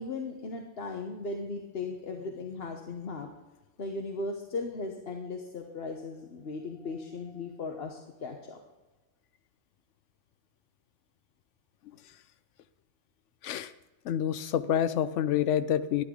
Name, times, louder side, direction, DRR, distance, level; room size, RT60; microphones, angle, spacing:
voice 1, 0.0-3.3 3.8-8.6, left 3 dB, 60° left, 2 dB, 1.2 m, -37 dB
voice 2, 14.0-16.0, left 10 dB, 90° left, 13 dB, 0.9 m, -27 dB
11.5 x 11.5 x 3.8 m, 1.2 s
omnidirectional pair, 1.2 m